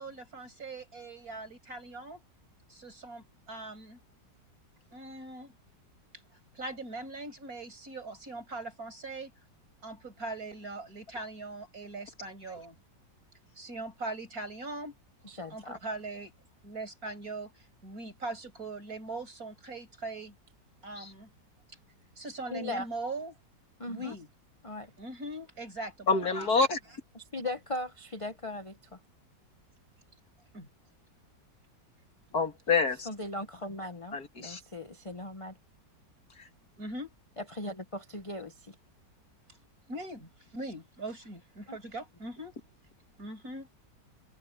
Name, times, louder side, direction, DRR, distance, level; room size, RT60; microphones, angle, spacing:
voice 1, 0.0-2.2 2.7-4.0 4.9-5.5 6.5-9.3 9.8-12.8 13.6-14.9 15.5-16.3 16.6-20.3 20.8-21.3 22.2-23.3 23.8-24.3 25.0-26.3 26.6-26.7 30.5-30.7 36.8-37.1 39.9-42.5 43.2-43.7, right 2 dB, 50° right, 6.7 m, -41 dB
voice 2, 15.2-15.8 22.5-22.9 23.8-24.1 24.6-24.9 27.1-29.0 33.0-35.5 37.4-38.7 41.7-41.8, left 1 dB, 20° left, 1.0 m, -38 dB
voice 3, 26.1-26.8 32.3-33.1 34.1-34.6, left 4 dB, 60° left, 2.6 m, -27 dB
omnidirectional pair, 1.9 m